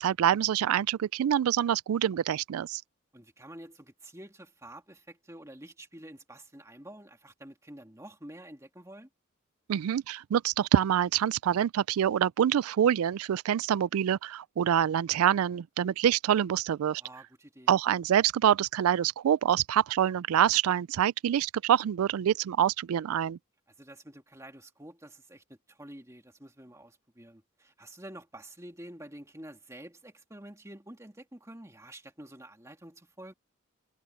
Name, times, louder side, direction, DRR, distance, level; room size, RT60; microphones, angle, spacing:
voice 1, 0.0-2.8 9.7-17.0 17.7-23.4, right 9 dB, 90° right, 0.3 m, -26 dB
voice 2, 3.1-9.1 17.0-17.7 23.8-33.3, right 1 dB, 15° right, 2.4 m, -48 dB
head